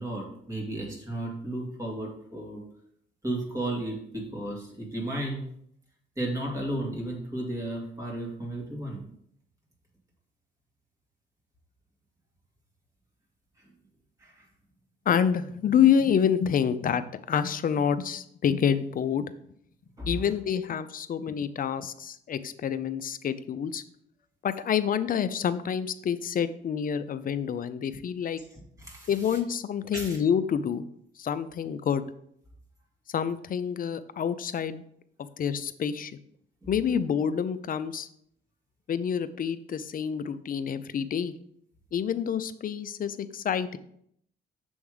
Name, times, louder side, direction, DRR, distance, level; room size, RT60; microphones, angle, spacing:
voice 1, 0.0-2.6 3.2-5.5 6.2-9.1 13.6-13.7 14.2-14.4 20.0-20.2 28.5-29.4 29.9-30.2 36.6-36.7, right 1 dB, 15° right, -2 dB, 2.4 m, -34 dB
voice 2, 15.1-19.2 20.1-23.8 24.4-28.4 29.1-30.8 31.2-32.0 33.1-34.8 35.4-36.2 36.7-38.1 38.9-41.3 41.9-43.8, left 8 dB, 45° left, 13 dB, 0.5 m, -27 dB
7.0 x 3.5 x 4.9 m, 0.70 s
cardioid pair, 90°, 20 cm